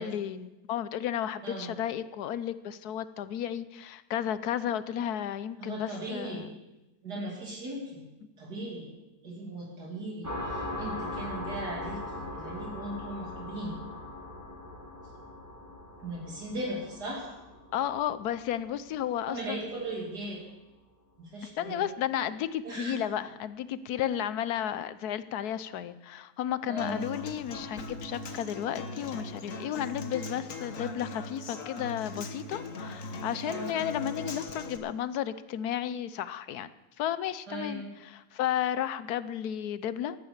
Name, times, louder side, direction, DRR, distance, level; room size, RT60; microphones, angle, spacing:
voice 1, 0.0-6.6 17.7-19.7 21.4-36.7 37.0-40.2, left 10 dB, 70° left, 15 dB, 1.2 m, -33 dB
voice 2, 1.4-1.7 5.6-6.5 7.0-8.0 8.4-8.9 9.2-13.8 16.0-17.3 19.3-20.4 21.2-21.8 22.6-23.0 26.7-27.0 33.4-33.7 37.5-37.9, right 1 dB, 65° right, -2 dB, 3.2 m, -38 dB
sound 1, 10.2-19.5, left 2 dB, 10° right, 2.0 m, -40 dB
Human voice / Acoustic guitar, 26.8-34.8, left 2 dB, 50° left, 1.5 m, -40 dB
13.5 x 11.5 x 7.2 m, 1.0 s
omnidirectional pair, 1.8 m